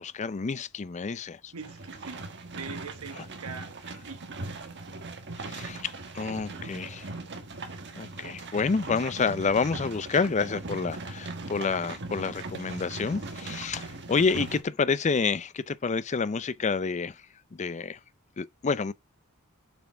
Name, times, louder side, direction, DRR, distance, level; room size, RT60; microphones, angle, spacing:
voice 1, 0.0-1.5 5.4-7.1 7.9-17.2 17.5-18.0 18.4-18.9, left 5 dB, 35° left, 0.5 m, -29 dB
voice 2, 1.5-2.2 2.6-3.8 4.0-4.2, right 5 dB, 90° right, 1.4 m, -41 dB
sound 1, 1.6-14.6, right 3 dB, 55° right, 1.5 m, -39 dB
7.0 x 6.2 x 4.5 m
head